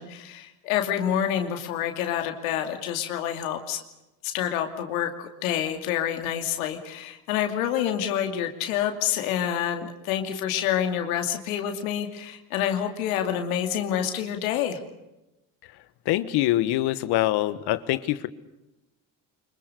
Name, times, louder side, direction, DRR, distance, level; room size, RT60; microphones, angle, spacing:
voice 1, 0.0-3.8 4.2-14.8, left 10 dB, 90° left, 5 dB, 2.7 m, -28 dB
voice 2, 16.1-18.3, left 15 dB, 70° left, 14 dB, 1.6 m, -24 dB
26.0 x 23.5 x 6.9 m, 0.96 s
supercardioid pair, 80°, 40 cm